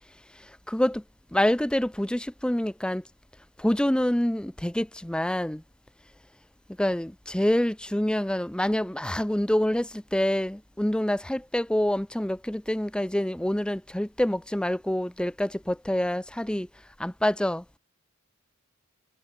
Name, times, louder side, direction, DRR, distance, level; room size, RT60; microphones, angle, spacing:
voice 1, 0.7-1.0 1.3-3.0 3.6-5.6 6.8-16.7 17.0-17.6, left 1 dB, 5° left, 0.5 m, -26 dB
head